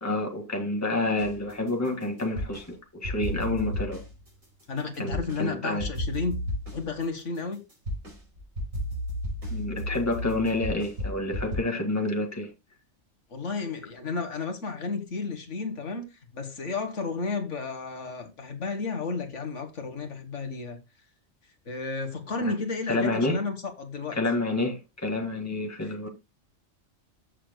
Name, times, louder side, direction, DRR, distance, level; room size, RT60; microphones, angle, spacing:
voice 1, 0.0-4.0 5.0-5.9 9.5-12.5 22.4-22.5 22.9-23.4 24.2-26.1, left 2 dB, 10° left, 1.9 m, -29 dB
sound 1, 1.2-2.7 3.0-5.5 5.8-11.6, equal, 90° right, 5.1 m, -33 dB
voice 2, 4.7-7.6 13.3-20.8 21.7-24.2, left 4 dB, 65° left, 1.8 m, -32 dB
14.5 x 6.4 x 2.2 m
omnidirectional pair, 1.3 m